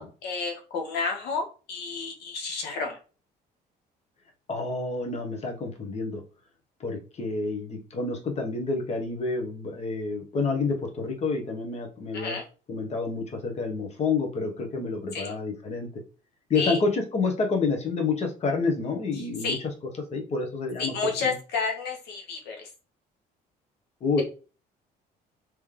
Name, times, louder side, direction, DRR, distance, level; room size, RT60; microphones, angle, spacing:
voice 1, 0.0-3.0 12.1-12.4 15.1-15.3 16.5-16.8 19.2-19.6 20.8-22.7, left 4 dB, 80° left, 2 dB, 1.1 m, -31 dB
voice 2, 4.5-6.2 6.8-12.4 12.7-15.9 16.5-19.6 20.1-21.3 24.0-24.2, left 4 dB, 40° left, 2 dB, 1.1 m, -28 dB
3.2 x 3.0 x 3.8 m, 0.35 s
cardioid pair, 110°, 17 cm